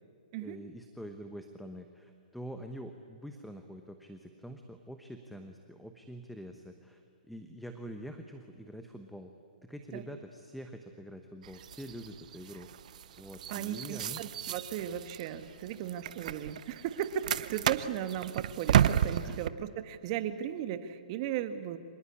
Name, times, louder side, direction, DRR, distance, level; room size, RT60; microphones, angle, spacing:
voice 1, 0.4-7.0 7.3-9.3 9.6-12.7 13.2-14.2 19.2-19.4, equal, ahead, 6 dB, 1.1 m, -45 dB
sound 1, 11.4-19.5, right 10 dB, 55° right, 0.8 m, -33 dB
voice 2, 13.5-21.8, right 10 dB, 40° right, 10 dB, 1.5 m, -36 dB
26.0 x 19.5 x 8.6 m, 2.2 s
hypercardioid pair, 140°, 5 cm